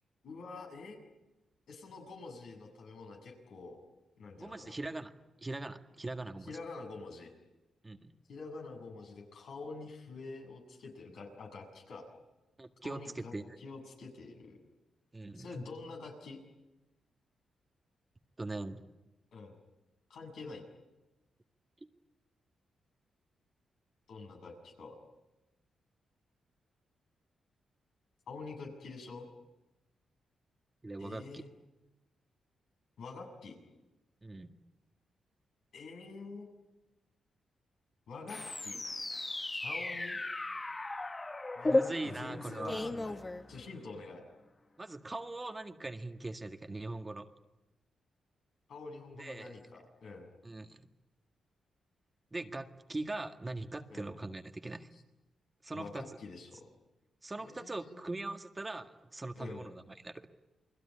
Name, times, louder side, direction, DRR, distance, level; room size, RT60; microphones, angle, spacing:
voice 1, 0.2-1.0 1.7-3.8 4.2-4.8 6.4-7.3 8.3-12.1 12.8-14.6 15.3-16.4 19.3-19.6 20.1-20.6 24.1-25.0 28.3-29.3 31.0-31.5 33.0-33.6 35.7-36.5 38.1-38.8 39.6-40.2 41.6-43.2 43.5-44.2 48.7-50.3 53.9-54.1 55.7-56.7 57.4-58.1 59.4-59.7, left 3 dB, 75° left, 2 dB, 7.1 m, -46 dB
voice 2, 4.4-5.1 5.4-6.5 7.8-8.1 12.6-13.6 15.1-15.7 18.4-18.8 30.8-31.4 34.2-34.5 41.7-42.8 44.8-47.3 49.2-49.5 50.4-50.8 52.3-54.9 55.6-56.0 57.2-60.3, right 2 dB, 20° right, 6 dB, 1.8 m, -41 dB
sound 1, 38.3-43.9, left 2 dB, 25° left, 1.3 m, -35 dB
29.0 x 20.5 x 9.7 m, 1.0 s
cardioid pair, 75°, 0 cm